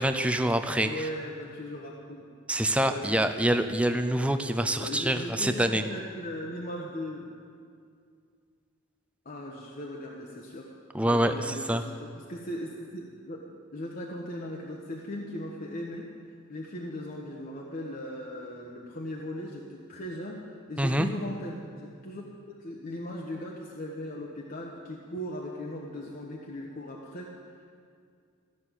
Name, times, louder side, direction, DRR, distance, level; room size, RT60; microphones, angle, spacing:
voice 1, 0.0-1.0 2.5-5.8 10.9-11.8 20.8-21.1, right 1 dB, 5° right, 7 dB, 0.5 m, -26 dB
voice 2, 0.8-2.3 2.8-3.2 4.8-7.3 9.2-13.5 13.7-16.1 16.5-22.2 22.6-27.3, left 1 dB, 45° left, -2 dB, 1.1 m, -38 dB
14.0 x 6.5 x 9.0 m, 2.2 s
head